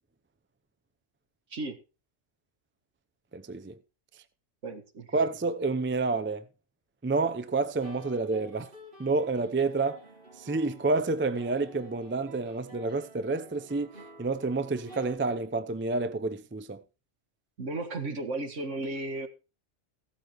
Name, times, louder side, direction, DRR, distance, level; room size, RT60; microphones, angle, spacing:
voice 1, 3.3-3.8 5.1-6.4 7.0-8.7 9.0-10.0 10.4-13.9 14.2-16.8, right 3 dB, 20° right, 0.3 m, -29 dB
voice 2, 4.6-5.2 17.6-19.3, right 2 dB, 65° right, 1.9 m, -34 dB
sound 1, 7.5-15.2, right 2 dB, 45° right, 3.0 m, -51 dB
15.5 x 12.5 x 3.1 m
omnidirectional pair, 1.3 m